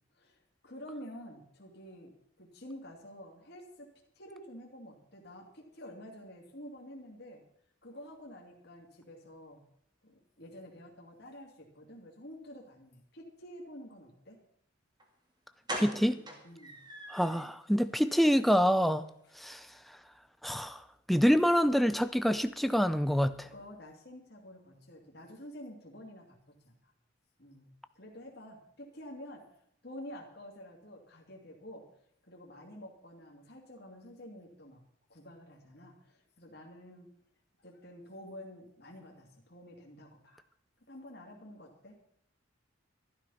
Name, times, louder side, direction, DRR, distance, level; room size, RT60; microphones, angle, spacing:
voice 1, 0.2-2.1 2.4-3.9 4.2-7.4 7.8-9.6 10.0-14.4 16.1-16.7 23.5-26.9 27.4-29.5 29.8-31.8 32.3-34.8 35.1-37.1 37.6-40.4 40.9-42.0, equal, 55° left, 0 dB, 2.6 m, -49 dB
sound 1, 15.0-15.1 15.7-17.4 17.8-17.9 18.3-18.4 18.7-18.8, right 1 dB, 20° right, 2.2 m, -41 dB
voice 2, 15.8-16.2 17.1-19.0 19.4-19.7 20.4-20.8 21.1-23.5, equal, ahead, 11 dB, 0.5 m, -26 dB
13.0 x 11.5 x 5.7 m, 0.70 s
head